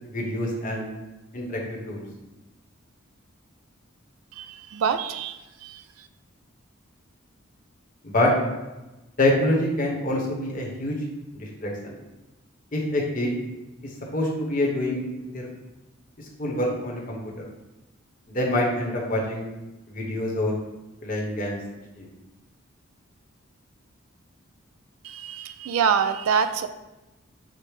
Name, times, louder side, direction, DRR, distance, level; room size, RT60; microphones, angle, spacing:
voice 1, 0.0-0.9 1.3-2.0 8.0-8.3 9.2-11.0 11.3-11.9 12.7-13.3 14.1-15.0 15.3-15.5 16.2-17.2 18.3-19.4 19.9-20.5 21.0-21.6 22.0-22.1, left 1 dB, 40° left, -1 dB, 0.8 m, -26 dB
voice 2, 4.3-6.1 25.0-26.7, right 7 dB, 90° right, 10 dB, 0.3 m, -26 dB
5.0 x 2.0 x 4.6 m, 1.0 s
head